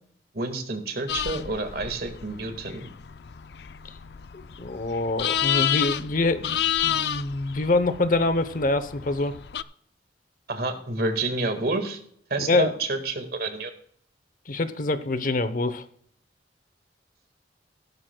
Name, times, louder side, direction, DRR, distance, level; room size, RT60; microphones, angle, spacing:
voice 1, 0.3-2.9 10.5-12.0 12.3-13.7, right 2 dB, 60° right, 6 dB, 1.8 m, -29 dB
sound 1, 1.1-9.6, left 10 dB, 65° left, 0.4 m, -30 dB
voice 2, 4.5-9.3 12.5-12.7 14.5-15.8, left 2 dB, 50° left, 12 dB, 0.8 m, -25 dB
16.5 x 12.0 x 2.3 m, 0.64 s
head